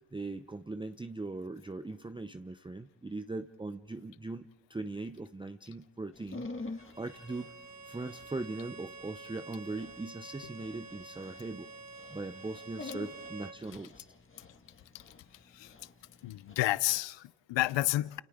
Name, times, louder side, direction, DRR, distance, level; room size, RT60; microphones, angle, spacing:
voice 1, 0.1-7.5 7.8-11.7 12.1-14.1, right 2 dB, 10° right, 0.7 m, -40 dB
Dog, 6.2-17.0, left 3 dB, 25° left, 1.8 m, -48 dB
Bowed string instrument, 6.8-13.6, right 3 dB, 35° right, 2.7 m, -49 dB
voice 2, 16.2-18.2, left 16 dB, 70° left, 0.6 m, -31 dB
29.0 x 28.0 x 3.7 m
supercardioid pair, 55°, 45 cm